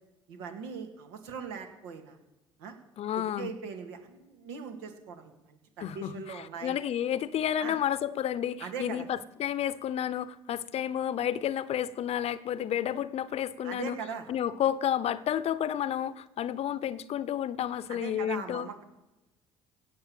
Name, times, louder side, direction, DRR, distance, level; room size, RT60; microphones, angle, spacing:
voice 1, 0.3-2.2 2.6-2.7 3.1-6.8 7.6-7.8 8.6-9.1 13.6-14.3 17.9-18.8, right 6 dB, 75° right, 2.1 m, -40 dB
voice 2, 3.0-3.5 5.8-14.0 14.3-18.7, left 10 dB, 55° left, 0.8 m, -31 dB
17.0 x 6.9 x 7.2 m
hypercardioid pair, 60°, 13 cm